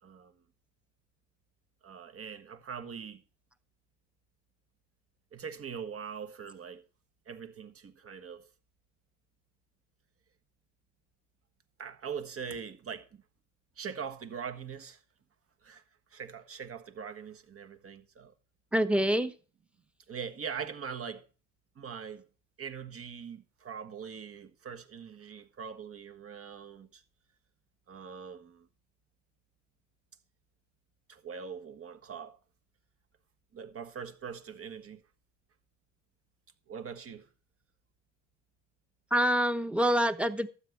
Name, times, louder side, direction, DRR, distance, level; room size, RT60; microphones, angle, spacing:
voice 1, 0.0-0.4 1.8-3.2 5.3-6.8 7.2-8.5 11.8-13.2 13.8-15.0 15.6-15.8 16.1-18.3 20.1-21.2 21.7-22.2 22.6-27.0 27.9-28.7 31.1-32.4 33.5-35.0 36.7-37.3, right 6 dB, 50° right, 1.5 m, -42 dB
voice 2, 18.7-19.3 39.1-40.5, equal, 5° right, 1.0 m, -26 dB
12.5 x 8.4 x 4.6 m
cardioid pair, 90°, 30 cm